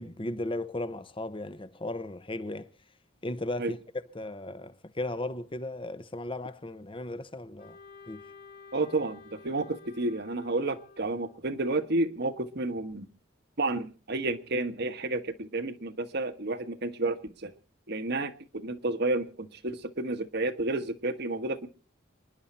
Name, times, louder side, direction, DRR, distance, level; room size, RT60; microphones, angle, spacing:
voice 1, 0.0-2.7 3.2-3.8 4.1-7.8 8.1-8.2, left 1 dB, 25° left, 0.9 m, -36 dB
Wind instrument woodwind instrument, 7.6-11.6, left 4 dB, 50° left, 3.4 m, -52 dB
voice 2, 8.7-13.0 13.6-17.5 17.9-21.7, right 2 dB, 55° right, 1.3 m, -31 dB
28.5 x 10.5 x 4.3 m
head